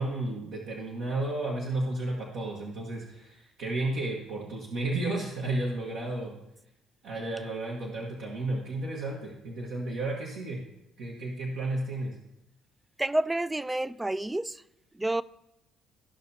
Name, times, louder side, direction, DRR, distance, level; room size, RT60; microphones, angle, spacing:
voice 1, 0.0-6.3 7.0-10.6 11.0-12.1, right 2 dB, 80° right, 1.3 m, -32 dB
voice 2, 13.0-14.6 14.9-15.2, right 1 dB, 15° right, 0.3 m, -29 dB
14.0 x 5.6 x 2.8 m
supercardioid pair, 65°, 0 cm